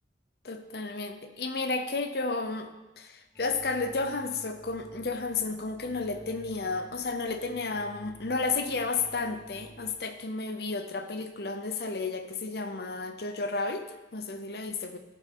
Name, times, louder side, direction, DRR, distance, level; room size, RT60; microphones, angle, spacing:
voice 1, 0.4-2.7 3.0-15.0, left 3 dB, 60° left, 8 dB, 0.8 m, -32 dB
sound 1, 3.3-9.9, right 1 dB, 10° left, 2.3 m, -51 dB
11.5 x 8.2 x 3.8 m, 1.1 s
head